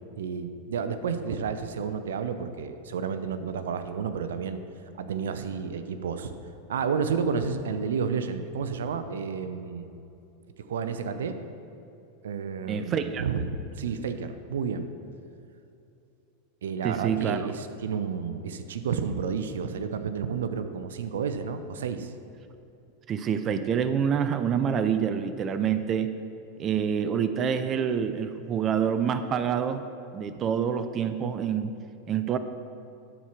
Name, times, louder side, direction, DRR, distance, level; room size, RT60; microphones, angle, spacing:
voice 1, 0.2-4.6 5.0-6.3 6.7-9.9 10.6-11.4 12.2-14.8 16.6-22.1, right 6 dB, 80° right, 9 dB, 0.6 m, -31 dB
voice 2, 12.7-13.3 16.8-17.4 23.1-26.1 26.6-29.8 30.1-31.8 32.1-32.4, right 7 dB, 35° right, 10 dB, 0.5 m, -27 dB
12.0 x 4.5 x 5.9 m, 2.7 s
hypercardioid pair, 100°, 0 cm